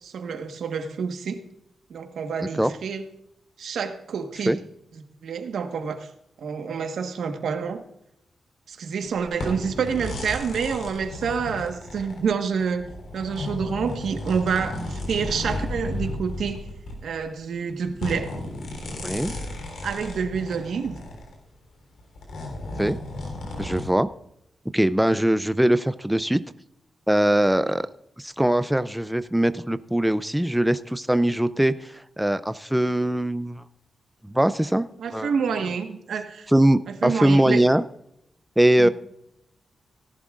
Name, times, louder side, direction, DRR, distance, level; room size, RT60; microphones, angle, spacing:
voice 1, 0.0-1.4 1.9-3.0 3.6-4.6 5.2-6.1 6.4-7.8 8.7-12.9 13.1-16.6 17.0-18.3 19.8-21.0 23.5-23.6 27.6-27.7 35.0-36.5 36.9-37.6 38.8-38.9, right 6 dB, 80° right, 6 dB, 1.3 m, -28 dB
sound 1, 9.0-21.4 22.0-23.9, left 1 dB, 80° left, 3.6 m, -34 dB
voice 2, 23.6-24.1 24.7-26.4 27.1-27.9 28.2-33.6 34.3-35.3 36.5-37.8 38.6-38.9, right 1 dB, 5° right, 12 dB, 0.4 m, -21 dB
18.0 x 11.0 x 2.5 m, 0.79 s
wide cardioid pair, 105°, 0 cm